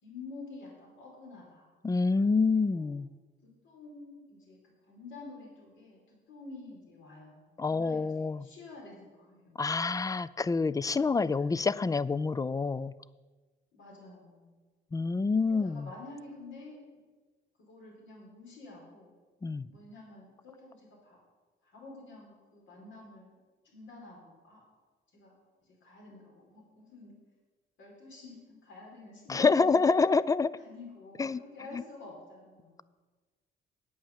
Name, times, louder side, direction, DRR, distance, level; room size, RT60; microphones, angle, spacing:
voice 1, 0.0-1.7 2.5-2.9 3.4-4.6 4.9-9.6 11.4-11.5 13.7-14.6 15.4-17.0 17.6-19.1 19.7-21.2 21.6-23.4 23.7-24.6 25.1-27.1 27.8-29.8 30.6-32.8, left 3 dB, 70° left, -2 dB, 4.5 m, -49 dB
voice 2, 1.8-3.1 7.6-8.5 9.6-12.9 14.9-15.9 19.4-19.7 29.3-30.6 31.2-31.4 31.7-31.8, left 4 dB, 15° left, 19 dB, 0.4 m, -27 dB
9.1 x 8.5 x 7.2 m, 1.3 s
cardioid pair, 90°, 20 cm